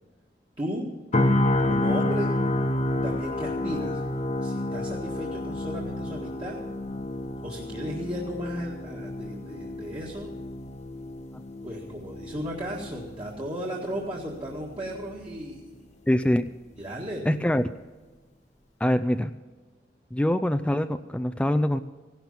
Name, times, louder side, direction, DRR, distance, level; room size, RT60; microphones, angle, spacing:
voice 1, 0.6-0.9 1.6-2.3 3.0-4.0 4.4-6.6 7.4-10.3 11.6-15.7 16.8-17.4, equal, 30° right, -2 dB, 1.8 m, -35 dB
sound 1, 1.1-15.1 15.5-15.7, left 1 dB, 40° left, 1.0 m, -30 dB
voice 2, 16.1-16.5 17.3-17.7 18.8-19.3 20.1-21.8, left 1 dB, 5° left, 9 dB, 0.4 m, -24 dB
16.5 x 12.0 x 5.5 m, 1.3 s
head